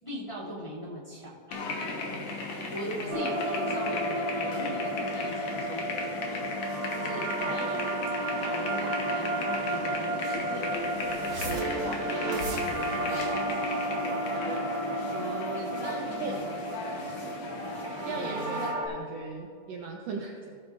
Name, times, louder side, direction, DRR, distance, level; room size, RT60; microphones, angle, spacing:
voice 1, 0.0-1.6 2.7-6.4 6.9-7.8 8.4-13.6 15.5-16.7 18.1-18.5, equal, 10° left, -9 dB, 2.1 m, -40 dB
sound 1, 1.5-18.7, left 3 dB, 60° left, 2.1 m, -36 dB
sound 2, 3.1-18.9, right 1 dB, 50° right, 1.6 m, -32 dB
voice 2, 15.1-16.3 18.0-20.6, right 4 dB, 85° right, 0 dB, 1.4 m, -38 dB
17.5 x 8.4 x 2.5 m, 2.5 s
omnidirectional pair, 3.9 m